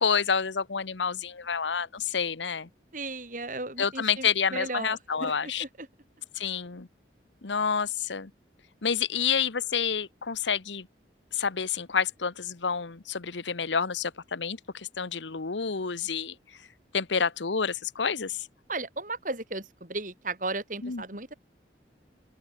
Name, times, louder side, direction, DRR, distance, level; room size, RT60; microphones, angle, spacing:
voice 1, 0.0-2.7 3.8-5.6 6.4-6.9 7.4-8.3 8.8-10.9 11.3-16.3 16.9-18.5 20.8-21.0, left 6 dB, 90° left, 1.1 m, -29 dB
voice 2, 2.9-5.9 18.7-21.3, right 3 dB, 45° right, 5.5 m, -35 dB
open air
head